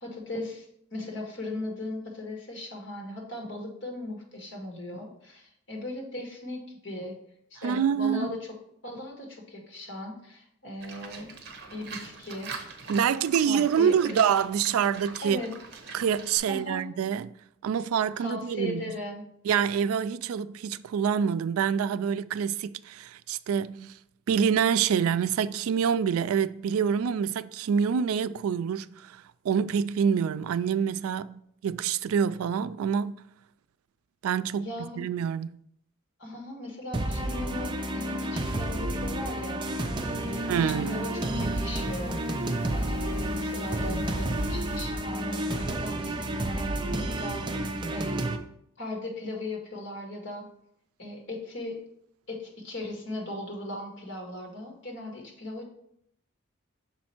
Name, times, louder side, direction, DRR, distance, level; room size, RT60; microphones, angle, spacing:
voice 1, 0.0-7.1 7.5-8.4 8.8-11.3 11.7-12.9 13.4-14.2 15.2-15.5 16.5-16.8 18.2-19.2 34.6-35.0 36.2-39.6 40.0-47.4 47.9-48.2 48.8-50.5 51.0-51.8 52.3-55.7, left 2 dB, 60° left, 1.6 m, -38 dB
voice 2, 7.6-8.4 12.9-15.4 15.9-17.3 17.6-19.0 19.4-24.0 24.3-33.2 34.2-34.7 35.0-35.6 40.5-41.1, right 7 dB, 85° right, 0.3 m, -26 dB
Livestock farm animals working animals, 10.8-16.4, right 4 dB, 50° right, 0.9 m, -43 dB
sound 1, 36.9-48.4, right 1 dB, 20° right, 0.5 m, -30 dB
sound 2, 39.6-44.8, equal, 20° left, 2.8 m, -48 dB
6.3 x 4.3 x 4.4 m
head